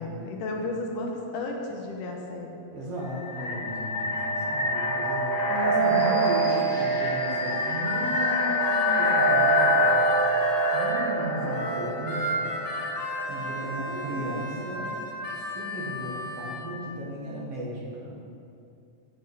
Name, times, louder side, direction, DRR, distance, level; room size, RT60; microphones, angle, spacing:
voice 1, 0.0-2.5 5.5-6.3 13.9-14.3, left 2 dB, 80° left, 1 dB, 2.7 m, -33 dB
voice 2, 2.7-5.4 5.7-10.0 10.7-12.5 13.3-14.9 15.3-18.2, equal, 55° right, -5 dB, 2.6 m, -35 dB
sound 1, 3.0-13.8, right 1 dB, 15° left, 0.8 m, -25 dB
Harmonica, 7.5-11.0 11.5-16.6, equal, 50° left, 2.5 m, -34 dB
9.2 x 6.2 x 8.1 m, 2.5 s
omnidirectional pair, 3.7 m